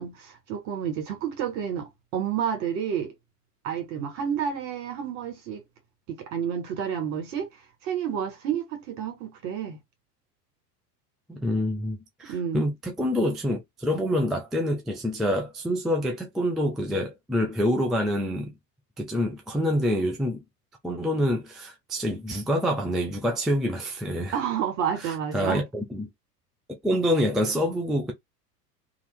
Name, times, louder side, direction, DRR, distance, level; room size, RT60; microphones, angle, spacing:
voice 1, 0.0-3.1 3.6-5.6 6.1-7.5 7.8-9.8 12.2-12.6 24.3-25.6, right 8 dB, 50° right, 1.9 m, -30 dB
voice 2, 11.3-18.5 19.0-20.4 20.8-24.3 25.0-26.1 26.8-28.1, equal, ahead, 0.3 m, -26 dB
2.8 x 2.8 x 3.5 m
figure-of-eight pair, 80°, 48 cm